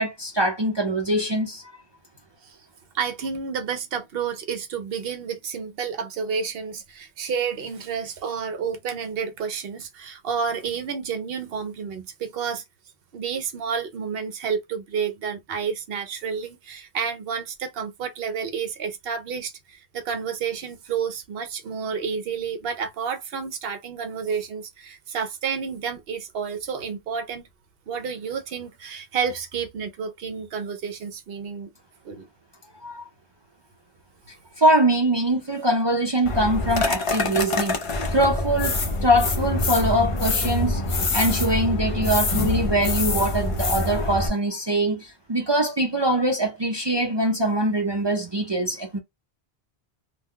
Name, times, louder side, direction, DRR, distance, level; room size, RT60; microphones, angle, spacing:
voice 1, 0.0-1.7 32.8-33.1 34.6-37.8 38.1-49.0, right 1 dB, 40° right, 0.4 m, -23 dB
voice 2, 2.9-12.6 13.1-27.5 27.9-31.7 32.0-32.3, right 6 dB, 70° right, 0.8 m, -30 dB
sound 1, 36.2-44.3, left 2 dB, 40° left, 0.5 m, -25 dB
2.2 x 2.2 x 3.6 m
omnidirectional pair, 1.1 m